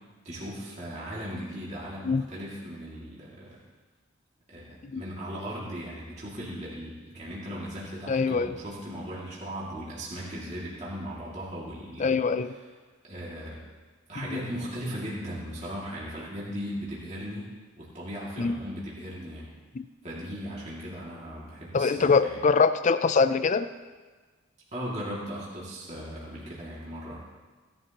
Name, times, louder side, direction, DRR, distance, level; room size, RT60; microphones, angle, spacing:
voice 1, 0.2-3.6 4.5-12.2 13.0-13.6 14.1-19.5 20.0-22.4 24.7-27.2, equal, 35° right, -6 dB, 2.3 m, -37 dB
voice 2, 8.1-8.5 12.0-12.5 14.2-14.4 18.4-18.6 19.7-19.9 21.7-23.7, left 4 dB, 35° left, 13 dB, 0.4 m, -24 dB
16.5 x 11.5 x 3.0 m, 1.4 s
head